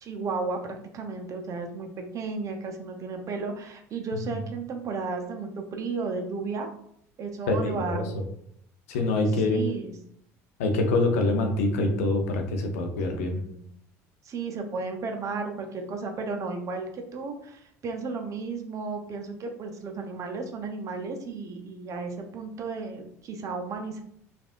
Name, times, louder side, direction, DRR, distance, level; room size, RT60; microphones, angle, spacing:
voice 1, 0.0-6.7 7.2-8.1 9.4-9.9 13.3-13.6 14.2-24.0, right 4 dB, 45° right, 4 dB, 0.6 m, -34 dB
voice 2, 7.5-8.2 8.9-9.7 10.6-13.4, left 2 dB, 80° left, 4 dB, 0.6 m, -25 dB
3.3 x 2.4 x 2.5 m, 0.71 s
hypercardioid pair, 75°, 8 cm